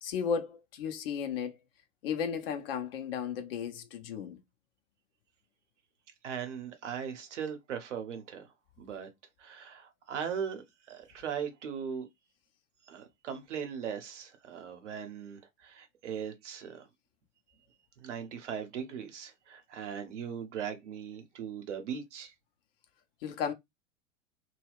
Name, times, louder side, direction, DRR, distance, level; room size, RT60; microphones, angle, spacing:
voice 1, 0.0-1.6 2.0-4.4 23.2-23.5, left 7 dB, 45° left, 0.6 m, -34 dB
voice 2, 6.2-8.5 8.8-9.1 9.4-10.6 10.9-12.1 12.9-16.8 18.0-22.3, right 7 dB, 60° right, 0.9 m, -39 dB
2.3 x 2.2 x 3.4 m
figure-of-eight pair, 100°, 40 cm